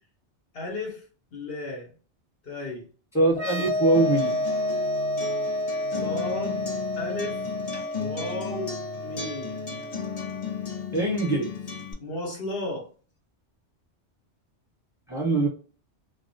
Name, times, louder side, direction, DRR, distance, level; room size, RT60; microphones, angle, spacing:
voice 1, 0.5-1.0 1.3-1.9 2.4-2.8 5.9-6.7 6.9-7.4 8.0-9.6 12.0-12.9, left 2 dB, 60° left, -1 dB, 1.0 m, -34 dB
voice 2, 3.1-4.3 10.9-11.5 15.1-15.5, right 2 dB, 5° right, -2 dB, 0.9 m, -22 dB
sound 1, 3.3-10.8, left 1 dB, 30° right, 0.7 m, -30 dB
Acoustic guitar, 3.9-11.9, left 5 dB, 45° left, 0.6 m, -35 dB
2.2 x 2.2 x 2.6 m, 0.39 s
omnidirectional pair, 1.2 m